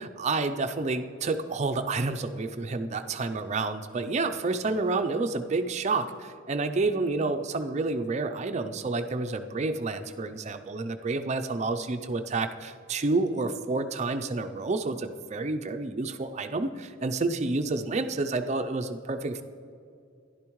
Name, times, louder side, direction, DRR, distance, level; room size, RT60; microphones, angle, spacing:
voice 1, 0.0-19.4, right 3 dB, 35° right, 8 dB, 0.4 m, -29 dB
12.0 x 11.0 x 3.1 m, 2.6 s
head